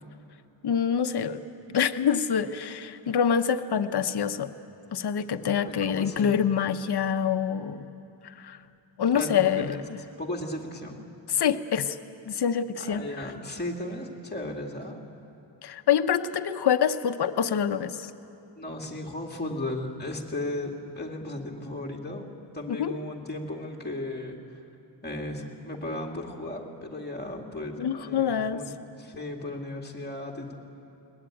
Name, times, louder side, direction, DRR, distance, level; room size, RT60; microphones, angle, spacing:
voice 1, 0.6-1.4 1.7-4.5 4.9-7.9 8.2-8.6 9.0-9.8 11.3-12.0 12.3-13.3 15.6-18.1 22.7-23.0 27.8-28.6, left 8 dB, 65° left, 10 dB, 0.9 m, -26 dB
voice 2, 5.6-6.4 9.1-9.8 10.2-11.0 12.8-15.0 18.6-22.2 22.5-24.6 25.0-30.5, left 1 dB, 25° left, 1 dB, 2.4 m, -35 dB
21.5 x 20.0 x 9.1 m, 2.8 s
wide cardioid pair, 135°, 43 cm